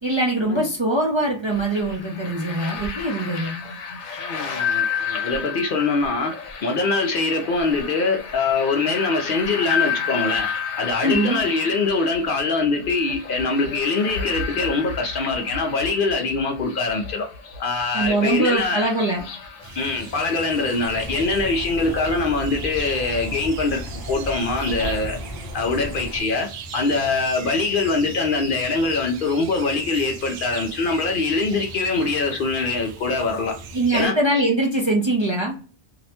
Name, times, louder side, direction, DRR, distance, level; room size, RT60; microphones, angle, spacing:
voice 1, 0.0-3.5 11.0-11.4 17.9-19.2 33.7-35.5, right 2 dB, 35° right, -2 dB, 0.5 m, -22 dB
Mike's Afternoon In Suburbia - Wind Chimes Enveloped, 1.5-20.9, left 6 dB, 85° left, 0.9 m, -31 dB
voice 2, 4.2-6.3 6.6-10.5 10.8-17.3 17.6-18.9 19.8-23.8 24.1-25.2 25.5-26.5 26.7-33.6 33.9-34.2, left 3 dB, 60° left, 2 dB, 0.6 m, -23 dB
sound 1, 19.6-34.0, right 4 dB, 75° right, 0.9 m, -39 dB
sound 2, 20.8-26.2, equal, 20° left, 0.7 m, -34 dB
2.7 x 2.1 x 2.8 m, 0.37 s
omnidirectional pair, 1.2 m